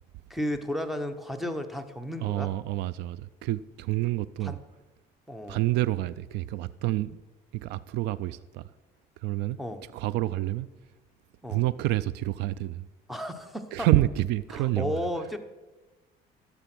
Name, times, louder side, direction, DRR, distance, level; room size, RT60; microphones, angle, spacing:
voice 1, 0.3-2.5 4.4-4.6 5.3-5.6 9.6-9.8 11.4-11.6 13.1-13.9 14.5-15.4, left 1 dB, ahead, 0.9 m, -33 dB
voice 2, 2.2-4.6 5.5-7.2 7.5-8.7 9.2-9.6 9.9-10.7 11.5-12.9 13.7-15.0, right 16 dB, 85° right, 0.4 m, -28 dB
11.5 x 7.0 x 6.0 m
cardioid pair, 110°, 17 cm